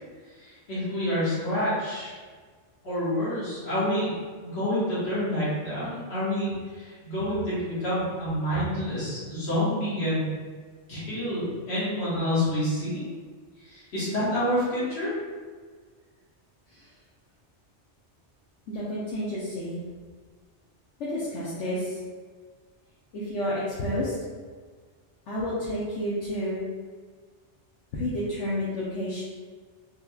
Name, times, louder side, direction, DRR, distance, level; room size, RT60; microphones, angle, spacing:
voice 1, 0.4-2.2 2.8-4.1 4.4-10.3 10.9-13.0 13.6-15.1, equal, 65° left, -13 dB, 1.7 m, -28 dB
voice 2, 18.7-19.8 21.0-22.0 23.1-24.1 25.3-26.6 27.9-29.2, left 1 dB, 85° left, -8 dB, 1.0 m, -30 dB
3.6 x 3.0 x 2.3 m, 1.5 s
omnidirectional pair, 1.2 m